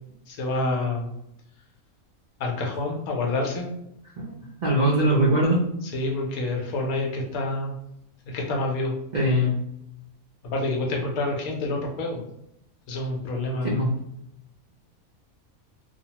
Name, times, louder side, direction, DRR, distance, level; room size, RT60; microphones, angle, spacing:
voice 1, 0.3-1.1 2.4-3.7 5.9-7.8 8.3-8.9 10.4-12.2 12.9-13.8, left 2 dB, 80° left, 0 dB, 1.1 m, -28 dB
voice 2, 4.2-5.6 9.1-9.5 13.6-13.9, right 1 dB, 80° right, -5 dB, 0.4 m, -21 dB
2.8 x 2.0 x 2.8 m, 0.79 s
omnidirectional pair, 1.5 m